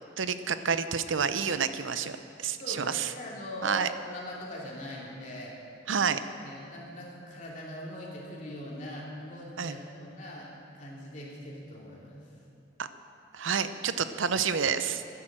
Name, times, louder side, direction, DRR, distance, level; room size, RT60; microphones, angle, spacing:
voice 1, 0.2-3.1 3.6-3.9 5.9-6.2 9.6-9.7 12.8-12.9 13.3-15.0, right 6 dB, 85° right, 11 dB, 0.7 m, -29 dB
voice 2, 2.6-5.6 6.4-10.5 10.7-12.2, left 1 dB, 40° left, -4 dB, 2.8 m, -41 dB
13.0 x 10.5 x 7.6 m, 2.6 s
head